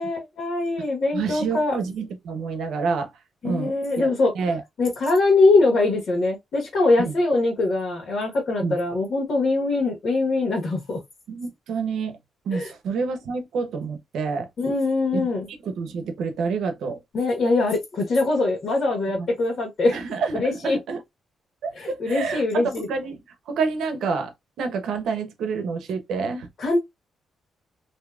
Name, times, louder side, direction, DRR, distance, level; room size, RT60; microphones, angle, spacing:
voice 1, 0.0-1.8 3.4-4.3 4.8-11.0 12.5-12.7 14.6-15.5 17.1-20.0 20.3-20.8 21.8-22.9 26.6-26.8, left 3 dB, 45° left, 1.2 m, -22 dB
voice 2, 1.1-3.1 3.4-4.1 4.3-4.6 7.0-7.1 8.6-8.7 11.3-12.2 12.5-14.5 15.1-15.3 15.6-17.0 19.2-19.3 19.9-21.0 21.6-23.2 23.5-24.3 24.6-26.5, right 5 dB, 80° right, 0.7 m, -28 dB
3.4 x 2.8 x 2.3 m
cardioid pair, 160°, 0 cm